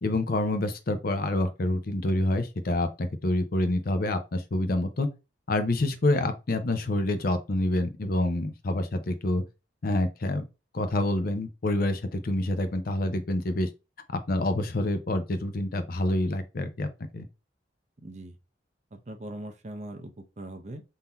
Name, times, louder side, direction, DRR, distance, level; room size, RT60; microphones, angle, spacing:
voice 1, 0.0-5.1 5.5-9.4 9.8-10.4 10.7-13.7 14.1-16.9 17.1-17.3, left 1 dB, 55° left, 0.6 m, -27 dB
voice 2, 18.0-18.4 18.9-20.8, right 1 dB, 40° right, 0.6 m, -40 dB
3.8 x 2.8 x 4.3 m
head